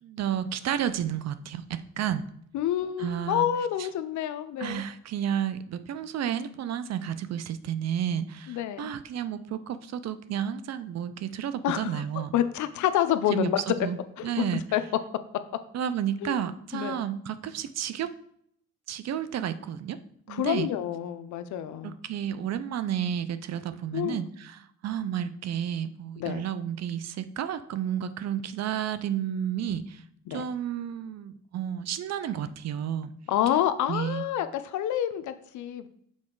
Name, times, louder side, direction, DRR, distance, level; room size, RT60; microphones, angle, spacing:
voice 1, 0.0-2.2 3.0-3.5 3.8-3.9 4.6-12.3 13.3-14.0 14.2-14.6 15.7-18.1 18.9-20.0 20.3-20.7 21.8-30.0 30.3-33.1 33.9-34.3, right 9 dB, 60° right, 13 dB, 0.5 m, -31 dB
voice 2, 2.5-4.8 8.5-8.9 11.6-12.0 12.3-13.6 14.2-14.4 14.7-14.8 16.2-16.4 16.7-17.0 20.3-22.0 23.9-24.2 26.2-26.4 30.3-30.4 33.3-35.9, left 11 dB, 75° left, 12 dB, 0.6 m, -28 dB
6.4 x 4.3 x 3.8 m, 0.69 s
cardioid pair, 90°, 30 cm